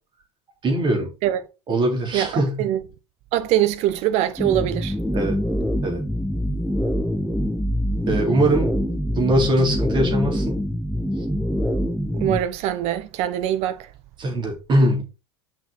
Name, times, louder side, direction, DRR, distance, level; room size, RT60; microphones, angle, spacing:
voice 1, 0.6-1.1 1.7-2.6 5.1-5.4 5.8-6.0 8.1-10.6 14.2-15.0, right 1 dB, 30° right, 3.6 m, -21 dB
voice 2, 2.1-2.8 3.3-5.0 12.1-13.9, right 12 dB, 45° right, 1.0 m, -23 dB
sound 1, 4.4-12.4, equal, ahead, 0.9 m, -25 dB
6.2 x 6.1 x 4.0 m
figure-of-eight pair, 75°, 15 cm